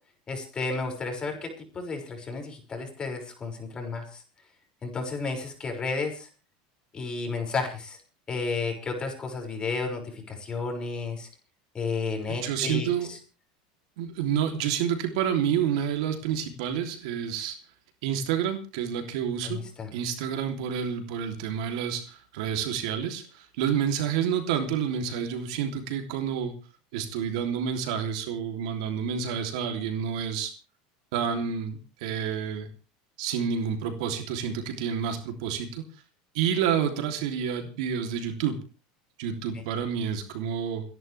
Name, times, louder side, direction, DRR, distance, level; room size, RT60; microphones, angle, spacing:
voice 1, 0.3-4.2 4.8-6.3 6.9-8.0 8.3-11.3 11.7-13.2 19.4-19.9 39.5-39.6, left 4 dB, 25° left, 3 dB, 6.2 m, -32 dB
voice 2, 12.3-13.1 14.0-17.6 18.0-19.6 19.9-26.5 26.9-30.5 31.1-32.7 33.2-35.8 36.3-38.6 39.2-40.8, right 8 dB, 75° right, 5 dB, 3.2 m, -29 dB
29.5 x 11.0 x 3.5 m, 0.35 s
supercardioid pair, 125°, 4 cm